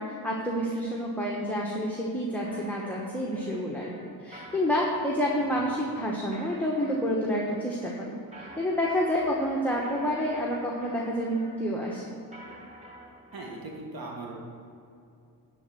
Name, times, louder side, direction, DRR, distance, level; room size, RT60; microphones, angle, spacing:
voice 1, 0.0-3.9 4.2-12.1, equal, 5° left, -3 dB, 1.1 m, -29 dB
sound 1, 2.4-13.7, equal, 20° right, 1.6 m, -48 dB
voice 2, 13.3-14.3, right 2 dB, 65° right, -1 dB, 1.5 m, -40 dB
11.0 x 4.1 x 7.5 m, 2.6 s
wide cardioid pair, 105°, 39 cm